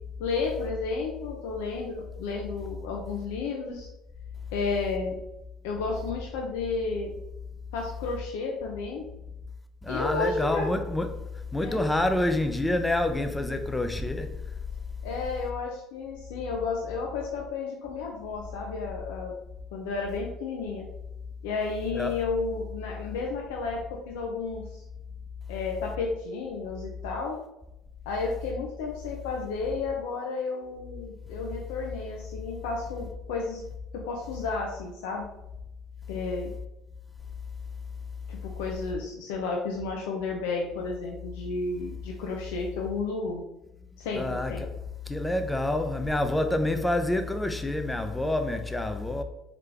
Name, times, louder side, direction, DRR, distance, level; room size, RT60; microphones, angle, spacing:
voice 1, 0.2-3.9 4.5-5.2 5.6-7.2 7.7-9.1 9.9-10.8 11.6-11.8 15.0-19.3 19.7-20.9 21.4-24.8 25.5-27.4 28.1-33.6 33.9-35.3 36.1-36.5 38.3-43.4 44.0-44.6, left 4 dB, 85° left, 0.5 m, -32 dB
voice 2, 9.8-14.4 21.9-22.2 44.2-44.7 45.1-49.2, left 1 dB, 10° left, 0.5 m, -27 dB
3.8 x 3.3 x 3.3 m
supercardioid pair, 75°, 0 cm